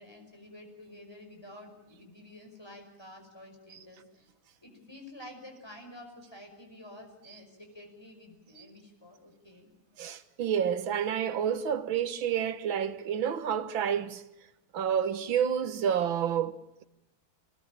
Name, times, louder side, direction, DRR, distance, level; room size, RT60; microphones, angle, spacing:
voice 1, 0.0-4.3 4.6-9.7, left 1 dB, 10° left, 5.7 m, -50 dB
voice 2, 10.0-14.2 14.7-16.8, right 8 dB, 70° right, 1.9 m, -29 dB
25.0 x 20.0 x 8.8 m
omnidirectional pair, 2.3 m